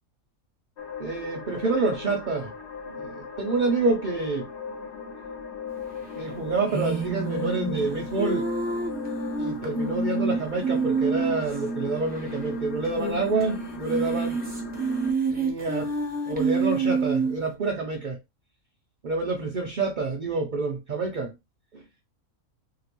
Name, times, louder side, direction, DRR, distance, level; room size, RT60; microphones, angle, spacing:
sound 1, 0.8-15.1, left 1 dB, 55° left, 0.9 m, -36 dB
voice 1, 1.0-2.5 2.9-4.5 6.2-8.5 9.4-14.4 15.3-15.9 16.3-18.2 19.0-21.3 21.7-21.8, right 3 dB, 55° right, 0.5 m, -28 dB
sound 2, 6.7-11.6 11.9-12.0 12.2-12.3 12.8-13.4 13.7-17.4, right 4 dB, 10° right, 0.5 m, -28 dB
2.9 x 2.9 x 2.9 m
omnidirectional pair, 1.5 m